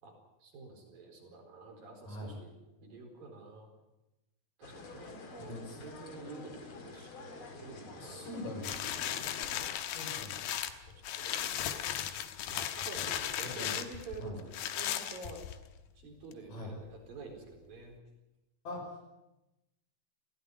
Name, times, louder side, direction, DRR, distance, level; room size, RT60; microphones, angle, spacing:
voice 1, 0.0-2.5 2.8-3.7 4.6-9.1 10.9-12.2 12.5-15.4 16.0-18.0, right 3 dB, 65° right, 1 dB, 6.1 m, -49 dB
sound 1, 4.6-9.8, left 4 dB, 40° left, 2.3 m, -49 dB
voice 2, 5.4-5.8 8.0-9.2 9.8-10.6 13.6-13.7 14.2-14.4 16.5-16.7 18.6-18.8, left 1 dB, 60° left, 1 dB, 7.3 m, -43 dB
sound 2, 8.6-15.8 16.3-16.4, left 10 dB, 75° left, 2.9 m, -36 dB
20.5 x 16.0 x 9.8 m, 0.96 s
omnidirectional pair, 4.4 m